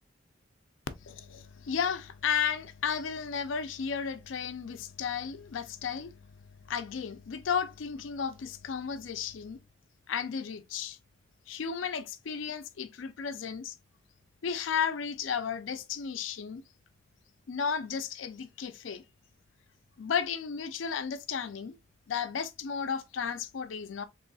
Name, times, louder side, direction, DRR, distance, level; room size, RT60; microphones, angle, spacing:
voice 1, 1.0-6.2 6.7-9.6 10.1-11.0 11.5-13.7 14.4-16.6 17.5-19.0 20.0-21.8 22.1-24.0, left 7 dB, 90° left, 0.5 m, -33 dB
3.9 x 3.1 x 2.3 m
head